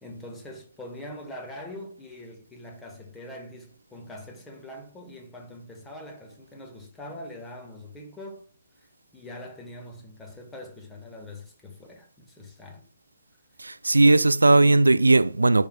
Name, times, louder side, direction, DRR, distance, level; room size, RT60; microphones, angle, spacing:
voice 1, 0.0-8.5 9.1-12.9, left 1 dB, 10° left, 1.4 m, -43 dB
voice 2, 13.6-15.7, right 2 dB, 75° right, 0.3 m, -18 dB
10.5 x 5.3 x 2.3 m
figure-of-eight pair, 130°, 0 cm